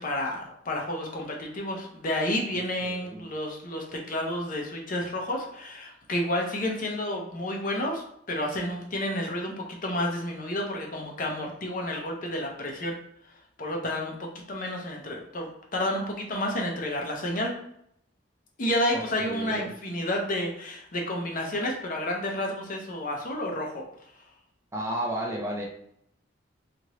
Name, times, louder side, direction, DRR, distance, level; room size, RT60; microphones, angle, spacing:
voice 1, 0.0-13.0 13.6-17.5 18.6-23.8, left 1 dB, 45° left, 0 dB, 0.6 m, -30 dB
voice 2, 2.8-3.2 18.9-19.7 24.7-25.7, right 1 dB, 15° right, -1 dB, 0.4 m, -33 dB
2.9 x 2.5 x 3.0 m, 0.71 s
head